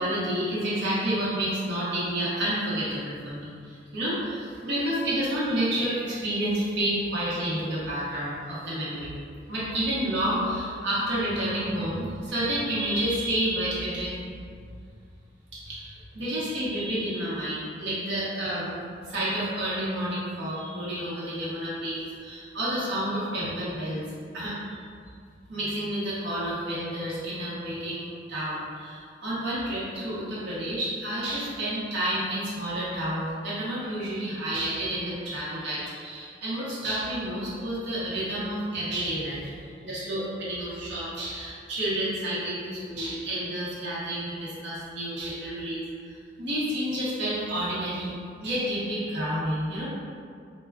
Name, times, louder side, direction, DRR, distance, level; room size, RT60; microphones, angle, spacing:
voice 1, 0.0-9.2 9.5-14.2 15.5-24.0 24.3-24.8 25.5-48.1 48.4-49.9, right 1 dB, 85° right, -9 dB, 0.8 m, -30 dB
2.2 x 2.1 x 3.4 m, 2.2 s
head